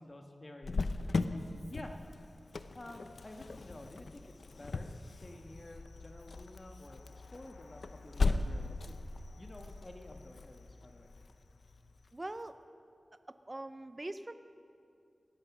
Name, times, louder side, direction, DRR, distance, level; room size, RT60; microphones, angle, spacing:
voice 1, 0.0-2.0 2.7-7.0 7.3-8.9 9.4-11.2, left 1 dB, 40° left, 3 dB, 1.4 m, -51 dB
Cricket, 0.6-12.1, left 3 dB, 75° left, 0.6 m, -38 dB
voice 2, 12.1-12.6 13.3-14.3, right 2 dB, 35° right, 10 dB, 0.6 m, -42 dB
17.5 x 12.0 x 6.1 m, 2.5 s
cardioid pair, 40°, 0 cm